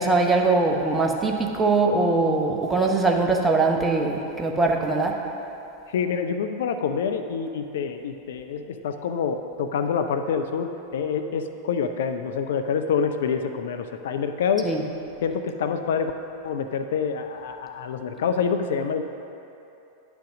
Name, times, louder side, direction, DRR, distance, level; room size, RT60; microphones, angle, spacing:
voice 1, 0.0-5.2 14.6-14.9, right 3 dB, 15° right, 1 dB, 0.9 m, -22 dB
voice 2, 5.9-14.7 15.2-16.1 16.4-19.0, left 6 dB, 60° left, 7 dB, 0.4 m, -26 dB
10.0 x 5.1 x 6.0 m, 2.9 s
figure-of-eight pair, 90°, 0 cm